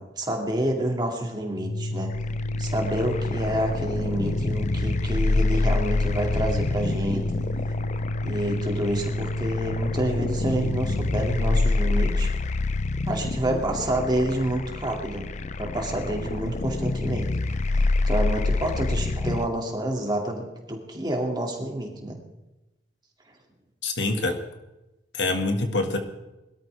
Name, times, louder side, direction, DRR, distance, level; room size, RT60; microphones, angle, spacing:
voice 1, 0.0-2.1 2.6-7.5 8.2-12.3 13.1-15.3 15.6-22.2, right 1 dB, 20° right, 1 dB, 2.4 m, -28 dB
Organ, 1.5-11.8, left 1 dB, 85° left, 1.0 m, -30 dB
sound 1, 2.1-19.5, left 3 dB, 40° left, 0.5 m, -27 dB
voice 2, 23.8-24.4 25.1-26.0, left 2 dB, 70° left, 5 dB, 1.9 m, -25 dB
22.0 x 13.0 x 3.5 m, 0.99 s
head